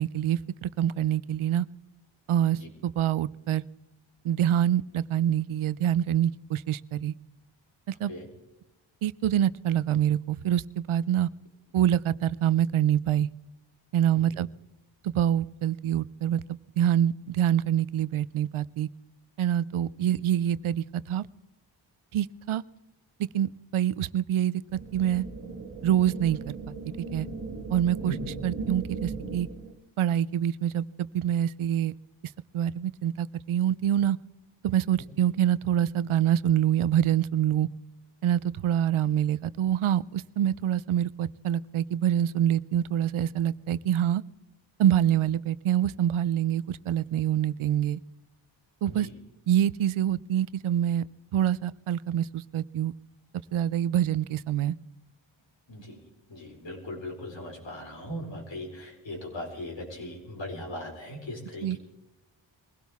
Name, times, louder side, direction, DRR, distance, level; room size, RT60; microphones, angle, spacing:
voice 1, 0.0-1.7 2.3-2.6 2.8-3.6 4.2-7.1 7.9-8.1 9.0-11.3 11.7-13.3 13.9-14.5 15.0-16.4 16.8-18.9 19.4-21.3 22.1-22.6 23.3-25.2 25.8-26.7 27.1-27.3 27.7-28.1 28.4-29.5 30.0-31.9 32.5-34.2 34.6-37.7 38.2-44.2 44.8-48.0 48.8-49.1 49.5-51.0 51.3-52.9 53.5-54.8 61.6-61.8, right 10 dB, 90° right, 19 dB, 0.6 m, -26 dB
sound 1, 24.7-29.7, right 4 dB, 75° right, 1.9 m, -37 dB
voice 2, 55.7-61.8, left 1 dB, 65° left, 1 dB, 4.4 m, -39 dB
22.0 x 16.5 x 3.5 m, 0.97 s
wide cardioid pair, 90°, 48 cm